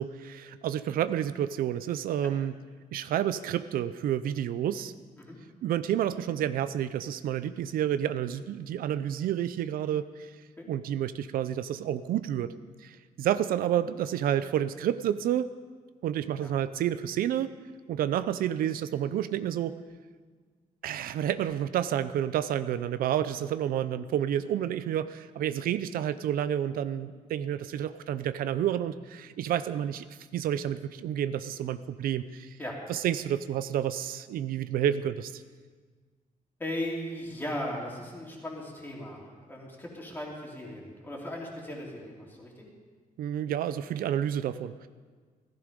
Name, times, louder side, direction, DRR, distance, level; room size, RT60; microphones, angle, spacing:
voice 1, 0.0-2.5 2.9-4.9 5.6-10.3 10.7-12.5 12.8-15.5 16.0-17.5 17.9-19.7 20.8-30.0 30.3-32.5 32.9-35.4 43.2-44.9, right 10 dB, 85° right, 13 dB, 0.6 m, -30 dB
voice 2, 16.4-16.7 23.3-23.4 32.6-32.8 36.6-42.7, left 1 dB, 15° left, -2 dB, 3.0 m, -38 dB
16.0 x 14.5 x 5.2 m, 1.5 s
cardioid pair, 170°, 15 cm